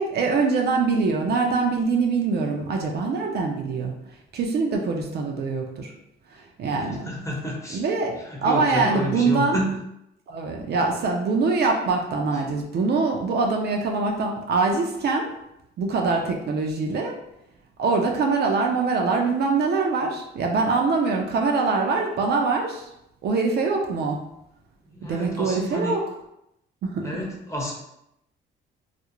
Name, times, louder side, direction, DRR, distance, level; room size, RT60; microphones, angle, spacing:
voice 1, 0.0-3.9 4.3-5.9 6.3-7.1 7.7-9.6 10.3-15.3 15.8-17.2 17.8-22.8 23.2-24.2 25.0-26.0 26.8-27.1, right 4 dB, 55° right, 2 dB, 0.4 m, -24 dB
voice 2, 6.7-7.8 8.3-9.7 24.9-26.0 27.0-27.7, equal, 15° left, -2 dB, 0.7 m, -29 dB
2.4 x 2.0 x 2.9 m, 0.82 s
cardioid pair, 90°, 20 cm